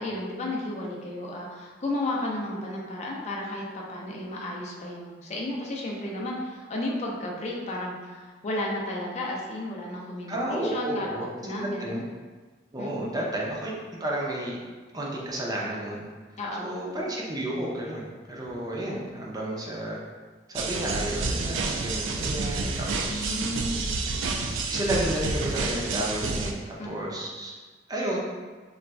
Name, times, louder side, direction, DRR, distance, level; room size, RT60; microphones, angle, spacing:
voice 1, 0.0-12.0 12.8-13.1 16.4-16.8 23.1-24.0 26.8-27.1, left 1 dB, 35° left, -2 dB, 0.5 m, -33 dB
voice 2, 10.3-12.0 12.7-13.7 14.0-14.6 14.9-16.1 16.6-20.0 20.5-23.4 24.7-27.5 27.9-28.2, right 1 dB, 20° right, -3 dB, 0.4 m, -31 dB
sound 1, 20.5-26.5, right 3 dB, 90° right, 0.3 m, -29 dB
3.9 x 2.4 x 2.2 m, 1.4 s
head